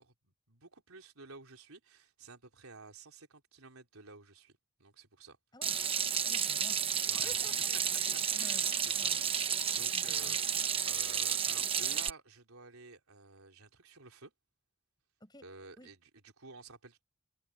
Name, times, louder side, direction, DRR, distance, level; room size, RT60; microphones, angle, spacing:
voice 1, 0.0-5.4 7.1-7.5 8.3-14.3 15.4-17.0, right 3 dB, 80° right, 3.8 m, -53 dB
Water tap faucet / Sink (filling or washing), 5.6-12.1, right 7 dB, 25° right, 1.1 m, -32 dB
voice 2, 6.2-6.8 7.2-8.6 8.9-9.2 9.9-10.4 15.2-15.4 15.8-15.9, left 1 dB, 20° left, 5.9 m, -53 dB
head